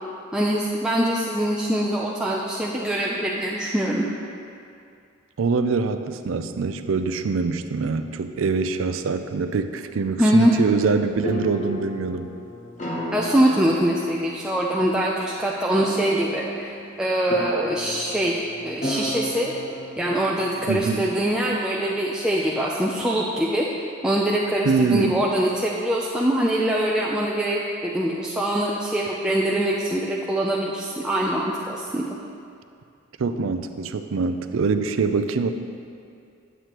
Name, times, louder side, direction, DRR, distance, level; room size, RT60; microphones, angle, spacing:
voice 1, 0.3-4.0 10.2-10.5 13.1-19.5 20.0-23.7 24.0-32.0, right 1 dB, 5° right, -4 dB, 0.4 m, -23 dB
voice 2, 5.4-12.3 20.7-21.1 24.6-25.2 33.2-35.5, right 4 dB, 70° right, 9 dB, 0.4 m, -24 dB
sound 1, 10.9-21.4, left 1 dB, 35° left, 0.8 m, -34 dB
9.2 x 8.1 x 3.0 m, 2.4 s
head